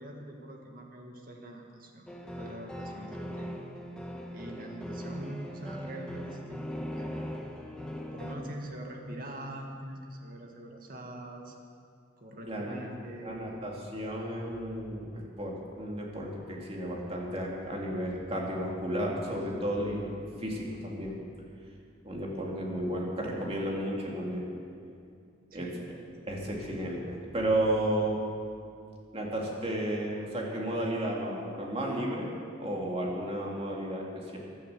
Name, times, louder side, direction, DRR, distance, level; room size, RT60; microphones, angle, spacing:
voice 1, 0.0-2.1 2.4-3.5 4.3-7.3 8.1-11.6 12.2-13.4 25.5-25.8 26.4-26.7, right 1 dB, 50° right, 1 dB, 1.9 m, -43 dB
sound 1, 2.1-8.4, equal, 5° left, 1.2 m, -40 dB
voice 2, 12.4-12.8 13.2-21.2 22.0-24.5 25.5-26.0 26.3-28.2 29.1-32.3 32.6-34.4, right 1 dB, 30° right, -2 dB, 2.4 m, -33 dB
15.5 x 11.5 x 6.8 m, 2.4 s
head